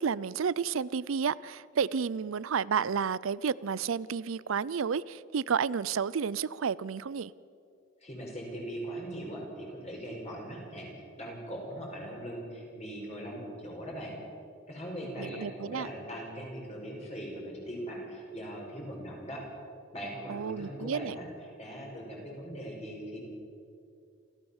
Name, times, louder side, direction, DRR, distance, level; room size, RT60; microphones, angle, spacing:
voice 1, 0.0-7.3 15.2-15.9 20.3-21.2, right 6 dB, 80° right, 0.5 m, -31 dB
voice 2, 8.0-14.2 14.7-19.4 19.9-21.3 21.6-23.3, right 1 dB, 30° left, 5.9 m, -40 dB
28.0 x 14.5 x 7.2 m
head